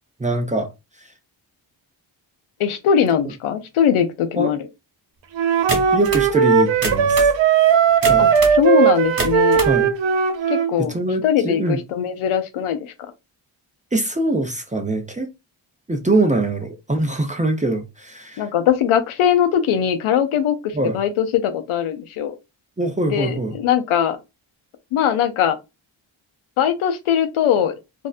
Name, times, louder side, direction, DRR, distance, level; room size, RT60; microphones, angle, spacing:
voice 1, 0.2-0.7 1.0-1.1 4.4-4.5 5.9-7.3 8.1-8.3 9.6-9.9 10.8-11.8 13.9-15.3 15.9-18.5 20.7-21.0 22.8-23.6, right 2 dB, 15° right, 0.6 m, -23 dB
voice 2, 2.6-4.6 8.2-9.6 10.5-10.9 11.2-12.9 18.4-22.3 23.1-24.2 24.9-25.6 26.6-27.7, left 9 dB, 85° left, 0.6 m, -20 dB
Wind instrument woodwind instrument, 5.4-10.7, right 7 dB, 65° right, 0.5 m, -17 dB
sound 1, 5.7-6.3 6.7-7.4 8.0-8.6 9.0-9.8, right 2 dB, 45° right, 1.3 m, -26 dB
2.6 x 2.1 x 2.4 m
cardioid pair, 45°, 49 cm